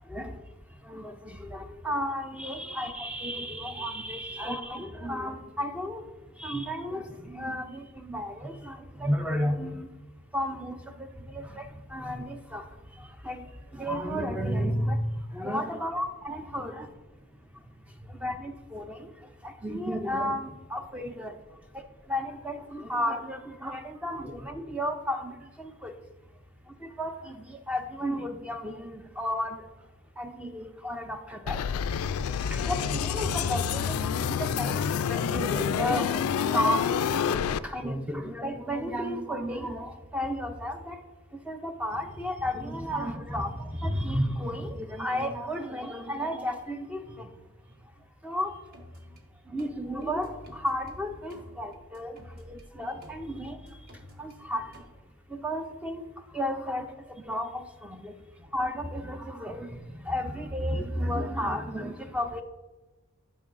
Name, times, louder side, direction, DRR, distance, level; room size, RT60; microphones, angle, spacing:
voice 1, 0.9-6.0 6.4-9.9 10.3-11.1 11.3-11.7 11.9-12.7 13.2-13.5 13.7-15.0 15.3-16.9 18.2-19.0 19.4-21.3 22.1-25.9 26.8-29.6 30.2-31.6 32.5-34.8 35.1-36.9 37.3-41.0 41.5-47.3 48.2-48.5 49.5-52.1 52.5-53.6 54.2-54.6 55.3-56.0 56.3-56.8 57.3-58.1 58.5-59.8 60.1-62.4, equal, 5° right, 6 dB, 0.4 m, -32 dB
sound 1, 31.5-37.6, left 7 dB, 75° left, 0.3 m, -28 dB
sound 2, 48.7-49.2 49.6-52.6 53.0-54.8, equal, 45° right, 1.4 m, -50 dB
12.5 x 5.9 x 2.5 m, 1.2 s
head